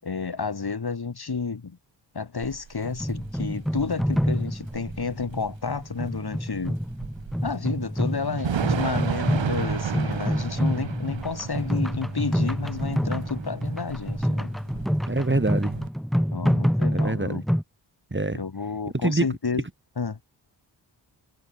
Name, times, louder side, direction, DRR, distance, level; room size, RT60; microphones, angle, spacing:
voice 1, 0.0-1.8 2.1-6.8 7.4-14.5 16.3-17.4 18.3-19.6 20.0-20.3, left 5 dB, 55° left, 7.9 m, -31 dB
Thunder / Rain, 2.4-15.9, right 7 dB, 80° right, 5.7 m, -34 dB
sound 1, 3.0-17.6, equal, ahead, 7.4 m, -27 dB
voice 2, 15.1-15.8 16.9-17.4 18.1-18.4 19.0-19.3, right 2 dB, 25° right, 6.4 m, -24 dB
cardioid pair, 45°, 44 cm